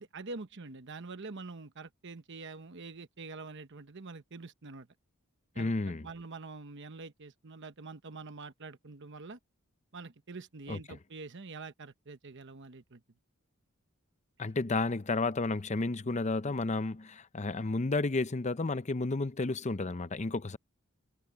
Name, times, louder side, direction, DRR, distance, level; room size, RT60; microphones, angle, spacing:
voice 1, 0.0-4.9 5.5-9.4 9.9-13.0, right 3 dB, 55° right, 1.0 m, -45 dB
voice 2, 5.6-6.1 10.7-10.8 14.4-20.6, left 3 dB, 35° left, 0.7 m, -32 dB
head